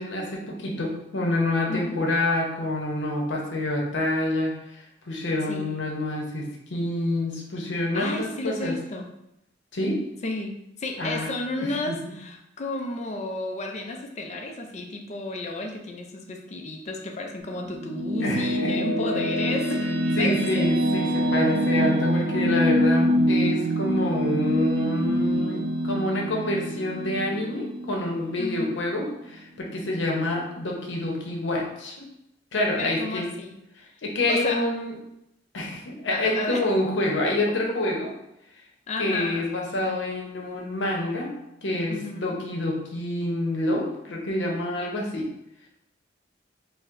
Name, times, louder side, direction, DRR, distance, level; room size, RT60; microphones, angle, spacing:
voice 1, 0.0-4.8 5.1-8.7 9.7-10.0 11.0-11.3 11.6-12.1 18.2-18.8 19.8-32.0 32.5-33.3 34.0-34.9 35.5-38.1 39.0-41.3 41.6-45.3, left 1 dB, 80° left, -1 dB, 0.7 m, -27 dB
voice 2, 1.7-2.0 5.5-5.7 7.9-9.1 10.2-19.9 20.2-20.7 28.4-28.7 32.8-33.5 34.3-34.6 36.1-36.6 37.9-38.0 38.9-39.5 41.9-42.4, left 2 dB, 40° left, 3 dB, 0.4 m, -32 dB
sound 1, 17.4-28.7, equal, 65° right, 0.4 m, -25 dB
4.4 x 2.1 x 2.5 m, 0.83 s
head